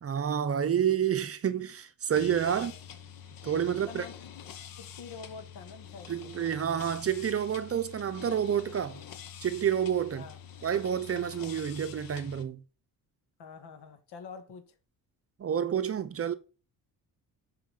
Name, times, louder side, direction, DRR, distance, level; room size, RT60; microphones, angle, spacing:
voice 1, 0.0-2.7 3.4-4.0 6.1-9.0 9.4-10.2 10.6-12.6 15.4-16.3, right 8 dB, 35° right, 0.7 m, -29 dB
sound 1, 2.1-12.4, left 8 dB, 55° left, 1.1 m, -46 dB
voice 2, 2.5-2.8 3.7-4.3 4.7-6.3 10.1-10.4 13.4-14.7, left 5 dB, 80° left, 1.9 m, -47 dB
7.1 x 5.8 x 5.6 m
cardioid pair, 125°, 40 cm